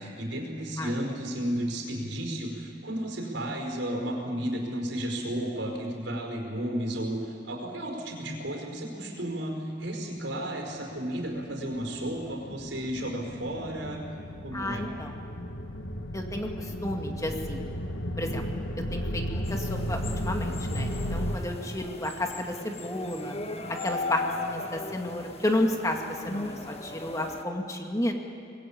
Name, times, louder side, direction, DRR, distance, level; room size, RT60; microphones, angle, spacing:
voice 1, 0.0-14.1 14.4-14.9, right 1 dB, 80° right, 2 dB, 5.0 m, -33 dB
sound 1, 11.0-21.4, equal, 85° left, 1.4 m, -34 dB
voice 2, 14.5-15.1 16.1-17.6 18.2-18.4 18.9-23.3 23.8-26.0 26.2-28.1, left 1 dB, 15° left, 2 dB, 2.1 m, -32 dB
sound 2, 19.4-27.4, left 3 dB, 35° left, 1.4 m, -38 dB
25.0 x 20.5 x 8.8 m, 2.6 s
head